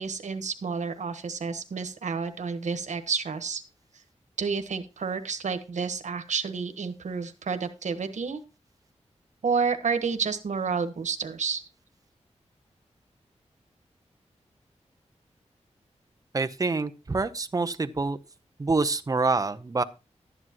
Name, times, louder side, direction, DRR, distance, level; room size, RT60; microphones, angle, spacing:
voice 1, 0.0-3.6 4.4-8.4 9.4-11.6, right 5 dB, 90° right, 9 dB, 1.3 m, -30 dB
voice 2, 16.3-18.2 18.6-19.8, right 3 dB, 30° right, 10 dB, 0.8 m, -26 dB
12.5 x 9.9 x 3.0 m, 0.29 s
wide cardioid pair, 135°, 12 cm